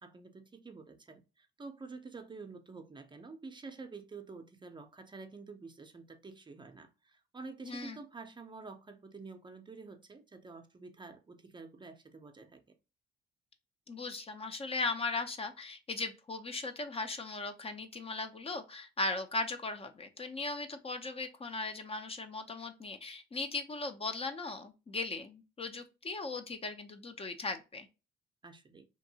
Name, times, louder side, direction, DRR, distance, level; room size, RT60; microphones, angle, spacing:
voice 1, 0.0-12.6 28.4-28.9, right 4 dB, 25° right, 0.5 m, -49 dB
voice 2, 7.6-8.0 13.9-27.9, left 3 dB, 30° left, 0.5 m, -38 dB
2.8 x 2.6 x 2.6 m
cardioid pair, 90°, 20 cm